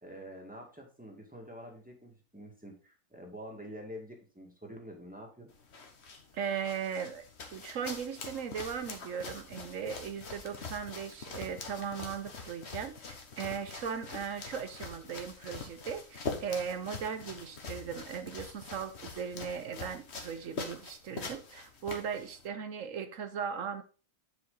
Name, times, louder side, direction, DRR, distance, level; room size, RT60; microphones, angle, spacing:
voice 1, 0.0-5.5, equal, 5° right, 2.0 m, -47 dB
sound 1, 5.5-22.5, left 4 dB, 45° left, 1.4 m, -44 dB
voice 2, 6.3-7.2 7.5-23.8, right 7 dB, 60° right, 1.1 m, -38 dB
9.1 x 5.0 x 3.9 m
omnidirectional pair, 1.6 m